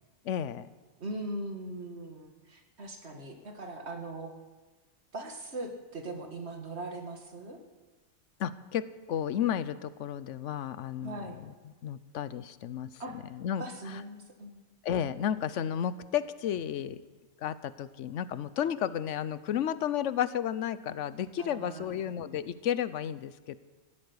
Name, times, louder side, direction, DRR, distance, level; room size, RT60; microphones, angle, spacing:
voice 1, 0.2-0.7 8.4-13.0 13.3-14.0 14.8-17.0 17.4-23.6, left 9 dB, 90° left, 16 dB, 1.0 m, -33 dB
voice 2, 1.0-4.3 5.1-7.6 11.0-11.4 13.0-13.2 13.6-14.6 21.4-22.1, right 2 dB, 65° right, 4 dB, 2.1 m, -40 dB
15.0 x 8.7 x 9.7 m, 1.3 s
omnidirectional pair, 1.2 m